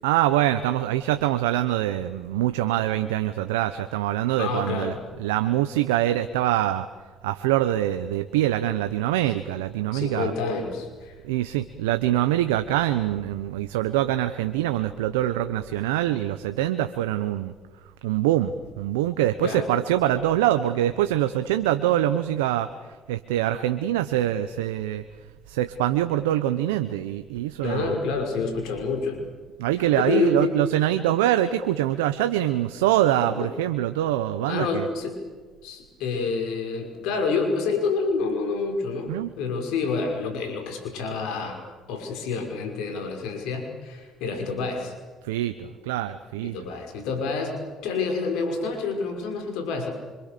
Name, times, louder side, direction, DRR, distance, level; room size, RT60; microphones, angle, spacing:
voice 1, 0.0-6.9 7.2-10.3 11.2-17.5 18.0-25.0 25.5-28.0 29.6-34.9 39.1-39.3 45.2-46.6, right 13 dB, 90° right, 10 dB, 1.0 m, -24 dB
voice 2, 4.4-5.0 9.9-11.2 19.4-19.7 27.6-29.2 29.9-30.5 31.1-31.2 33.2-33.5 34.5-35.3 35.6-41.6 41.9-44.9 46.4-47.6 47.8-49.9, left 4 dB, 75° left, 4 dB, 5.8 m, -28 dB
26.0 x 25.5 x 6.9 m, 1.4 s
hypercardioid pair, 60°, 0 cm